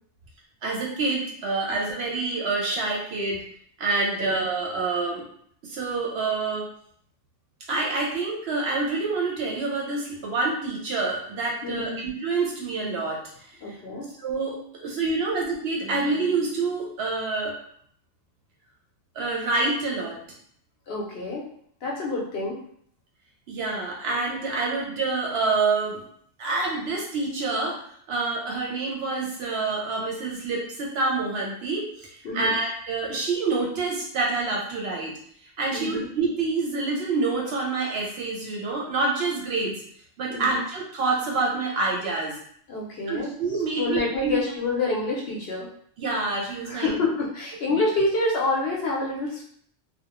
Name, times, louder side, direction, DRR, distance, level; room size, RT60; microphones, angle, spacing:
voice 1, 0.6-3.4 3.8-5.2 5.6-6.7 7.7-13.2 13.7-13.8 14.2-17.6 19.2-20.2 23.5-26.0 26.4-35.1 35.6-39.8 40.2-42.4 43.1-44.4 46.0-47.0, right 3 dB, 65° right, -1 dB, 0.7 m, -27 dB
voice 2, 11.6-12.0 13.6-14.1 20.9-21.4 21.8-22.6 32.2-32.6 35.7-36.1 40.3-40.6 42.7-43.3 43.8-45.7 46.6-49.4, left 2 dB, 65° left, -2 dB, 0.7 m, -27 dB
2.4 x 2.0 x 2.8 m, 0.64 s
omnidirectional pair, 1.3 m